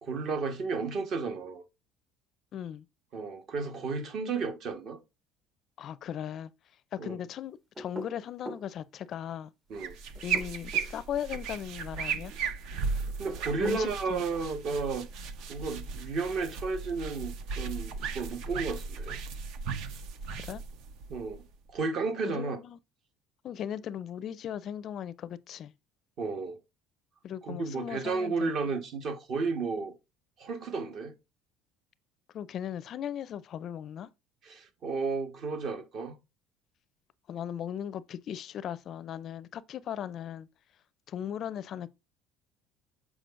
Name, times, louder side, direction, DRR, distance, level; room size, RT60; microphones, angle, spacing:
voice 1, 0.0-1.6 3.1-5.0 7.0-7.2 9.7-10.0 12.8-19.2 21.1-21.4 21.7-22.6 26.2-26.6 27.4-29.9 30.4-31.1 34.4-36.2, right 4 dB, 50° right, 1.3 m, -33 dB
voice 2, 2.5-2.9 5.8-6.5 6.9-9.5 10.2-12.3 13.6-14.2 20.4-20.6 22.2-22.8 23.4-25.7 27.2-28.5 32.3-34.1 37.3-40.5 41.1-41.9, left 9 dB, 45° left, 0.4 m, -37 dB
sound 1, 7.8-8.7 10.2-10.9 13.1-13.9, equal, 10° right, 0.6 m, -41 dB
sound 2, 9.7-21.7, right 5 dB, 65° right, 0.8 m, -36 dB
7.6 x 4.9 x 2.5 m
cardioid pair, 140°, 0 cm